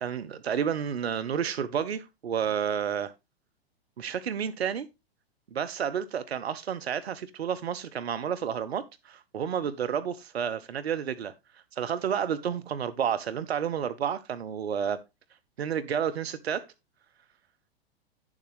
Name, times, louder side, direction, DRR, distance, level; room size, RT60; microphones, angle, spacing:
voice 1, 0.0-3.1 4.0-4.9 5.5-15.0 15.6-16.7, right 8 dB, 75° right, 0.7 m, -30 dB
9.8 x 7.3 x 3.2 m
figure-of-eight pair, 105°, 31 cm